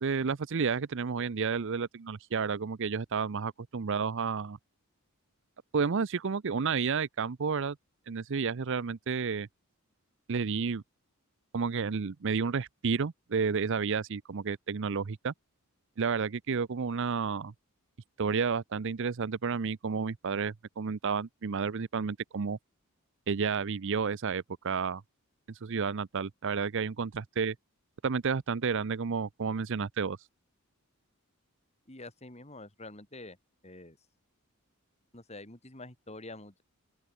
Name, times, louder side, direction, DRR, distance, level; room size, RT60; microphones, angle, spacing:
voice 1, 0.0-4.6 5.7-7.8 8.1-9.5 10.3-10.8 11.5-15.3 16.0-17.5 18.2-22.6 23.3-25.0 25.6-27.5 28.0-30.2, right 5 dB, 55° right, 0.6 m, -31 dB
voice 2, 31.9-33.4 33.6-34.0 35.1-36.6, left 2 dB, 30° left, 3.9 m, -47 dB
open air
head